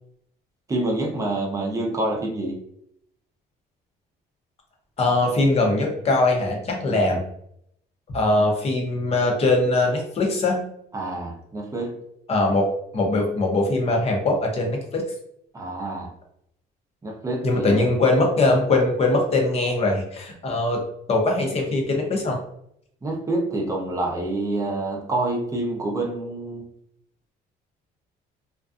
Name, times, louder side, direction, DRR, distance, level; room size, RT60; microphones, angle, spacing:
voice 1, 0.7-2.6 6.9-7.2 10.9-12.0 15.5-16.1 17.0-17.9 23.0-26.7, right 2 dB, 20° right, 0 dB, 0.6 m, -27 dB
voice 2, 5.0-7.2 8.1-10.6 12.3-15.0 17.4-20.8 21.1-22.4, left 2 dB, 35° left, 1 dB, 0.7 m, -21 dB
2.5 x 2.2 x 2.4 m, 0.72 s
cardioid pair, 110°, 17 cm